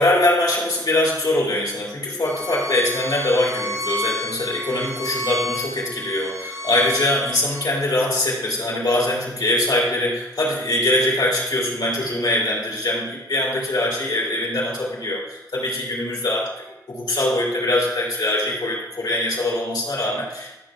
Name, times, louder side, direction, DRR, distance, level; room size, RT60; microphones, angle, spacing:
voice 1, 0.0-16.4 16.9-20.6, left 1 dB, 75° left, -5 dB, 3.4 m, -22 dB
Bowed string instrument, 2.2-7.7, left 1 dB, 40° right, 0.9 m, -31 dB
13.5 x 7.0 x 2.5 m, 0.97 s
wide cardioid pair, 80°, 8 cm